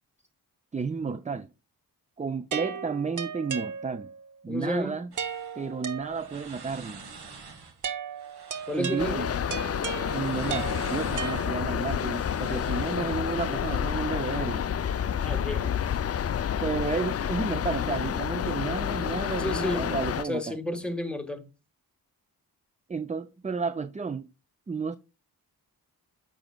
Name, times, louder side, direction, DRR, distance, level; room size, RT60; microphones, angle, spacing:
voice 1, 0.7-1.5 2.2-4.1 4.4-5.1 5.6-7.0 8.7-9.3 10.1-14.6 16.6-20.6 22.9-24.3 24.7-25.0, right 5 dB, 20° right, 0.4 m, -32 dB
sound 1, 2.5-4.3 5.2-6.6 7.8-11.9, right 6 dB, 50° right, 0.8 m, -36 dB
voice 2, 4.5-5.0 8.7-9.3 15.2-15.7 19.4-20.0 20.2-21.4, left 1 dB, ahead, 1.5 m, -31 dB
sound 2, 5.1-13.5, right 4 dB, 70° right, 1.4 m, -48 dB
sound 3, 9.0-20.2, left 8 dB, 40° left, 0.4 m, -29 dB
8.8 x 6.2 x 2.3 m
cardioid pair, 55°, 40 cm